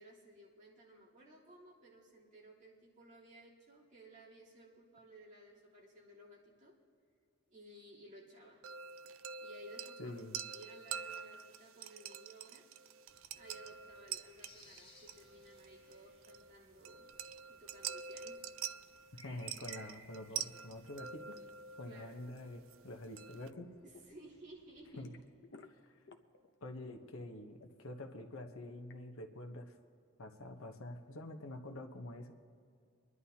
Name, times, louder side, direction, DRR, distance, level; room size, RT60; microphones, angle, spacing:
voice 1, 0.0-6.7 7.5-8.6 9.4-10.2 10.5-12.6 13.3-17.1 17.5-18.4 21.8-22.2 23.8-25.1, right 1 dB, 40° right, -8 dB, 3.5 m, -57 dB
sound 1, 8.6-23.5, right 8 dB, 70° right, 0.4 m, -47 dB
voice 2, 10.0-10.4 19.1-21.4 21.8-23.7 25.0-25.2 25.8-26.0 26.6-29.8 30.2-32.3, left 1 dB, 85° left, 5 dB, 1.0 m, -47 dB
sound 2, 13.1-25.2, left 1 dB, 25° left, 3.3 m, -63 dB
sound 3, 23.5-24.2 24.5-26.5 26.7-29.0, left 3 dB, 60° left, 0.8 m, -57 dB
25.5 x 11.0 x 2.9 m, 2.4 s
head